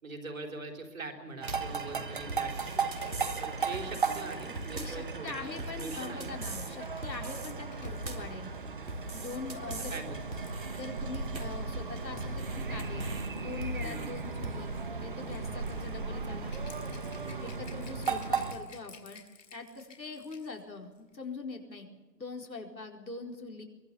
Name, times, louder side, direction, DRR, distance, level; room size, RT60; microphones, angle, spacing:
voice 1, 0.0-2.9 3.4-6.7 9.9-10.2 13.8-14.1 17.1-17.8, right 3 dB, 55° right, 3 dB, 3.9 m, -43 dB
sound 1, 1.4-18.5, right 4 dB, 30° right, 1.4 m, -36 dB
sound 2, 1.5-1.8 2.3-3.4 3.7-4.2 4.6-5.1 5.6-6.7 7.0-7.5 7.8-8.4 8.9-10.0 10.3-10.8 11.1-11.7 12.2-13.3 13.6-14.1 14.4-14.6, right 2 dB, 90° right, 3.7 m, -41 dB
Rattle / Rattle (instrument), 2.6-11.6 12.5-20.6 20.9-21.1, left 5 dB, 50° left, 3.3 m, -57 dB
voice 2, 4.7-8.5 9.1-10.0 10.7-13.0 13.4-16.6 17.4-19.2 19.5-21.9 22.2-23.6, left 3 dB, 90° left, 2 dB, 4.6 m, -43 dB
23.5 x 22.0 x 7.1 m, 1.2 s
figure-of-eight pair, 165°, 49 cm